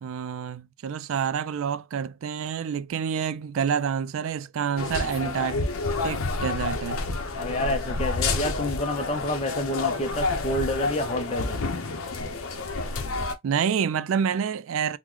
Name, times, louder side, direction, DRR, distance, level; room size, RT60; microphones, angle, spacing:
voice 1, 0.0-5.6 6.0-7.0 13.4-15.0, right 7 dB, 75° right, 0.4 m, -28 dB
sound 1, 4.8-13.3, left 3 dB, 85° left, 0.6 m, -29 dB
voice 2, 7.3-11.6, left 1 dB, 30° left, 0.5 m, -29 dB
3.8 x 2.1 x 2.9 m
head